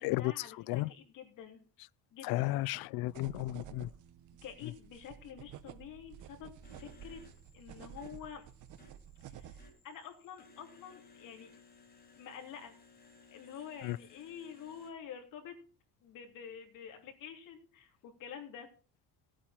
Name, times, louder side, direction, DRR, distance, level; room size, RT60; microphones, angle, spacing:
voice 1, 0.0-1.6 2.1-2.5 4.4-6.5 6.8-7.2 7.5-8.4 9.2-11.5 12.2-12.7 13.3-15.5 16.0-18.7, left 8 dB, 60° left, 3.3 m, -48 dB
voice 2, 2.2-3.9 13.8-14.0, left 18 dB, 90° left, 0.5 m, -33 dB
sound 1, 3.1-9.7, right 9 dB, 55° right, 1.0 m, -52 dB
sound 2, 6.6-14.9, left 4 dB, 25° left, 3.2 m, -61 dB
16.5 x 8.9 x 4.4 m
cardioid pair, 160°, 36 cm